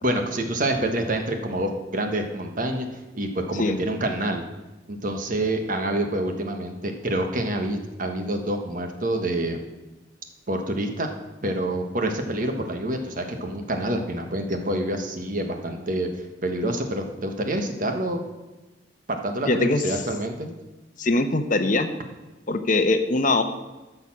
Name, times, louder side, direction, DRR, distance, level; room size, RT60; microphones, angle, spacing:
voice 1, 0.0-4.4 4.9-9.6 10.5-11.1 11.4-16.1 16.4-18.2 19.1-20.5, right 1 dB, 50° right, 4 dB, 1.4 m, -27 dB
voice 2, 19.5-19.8 21.0-21.9 22.5-23.4, left 2 dB, 45° left, 8 dB, 0.8 m, -21 dB
13.0 x 6.8 x 6.1 m, 1.1 s
head